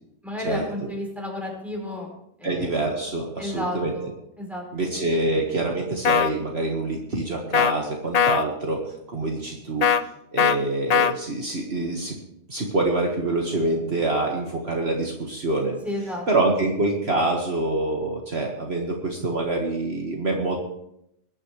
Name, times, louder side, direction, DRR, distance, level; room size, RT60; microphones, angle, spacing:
voice 1, 0.2-2.1 2.4-2.7 3.4-4.1 4.4-4.6 15.8-16.3, left 1 dB, ahead, -1 dB, 4.6 m, -31 dB
voice 2, 2.4-3.9 4.7-8.8 9.1-9.9 10.3-12.2 12.5-15.8 16.3-20.6, right 2 dB, 55° right, 0 dB, 1.9 m, -26 dB
sound 1, 6.0-6.3 7.5-7.7 8.1-8.5 9.8-10.0 10.4-10.6 10.9-11.1, left 7 dB, 55° left, 0.4 m, -19 dB
21.5 x 11.0 x 3.2 m, 0.78 s
omnidirectional pair, 1.3 m